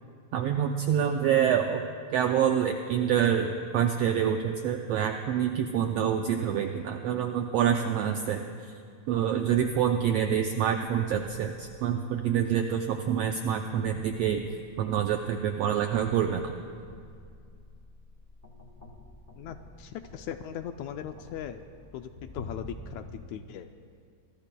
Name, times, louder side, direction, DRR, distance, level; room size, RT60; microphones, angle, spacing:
voice 1, 0.3-1.8 2.1-8.4 9.1-14.5 14.8-16.5, right 9 dB, 85° right, 4 dB, 1.4 m, -26 dB
sound 1, 10.9-23.1, left 2 dB, 45° left, 1.0 m, -49 dB
voice 2, 19.4-21.6 21.9-23.7, left 9 dB, 80° left, 7 dB, 1.8 m, -39 dB
27.0 x 22.0 x 2.2 m, 2.3 s
omnidirectional pair, 3.5 m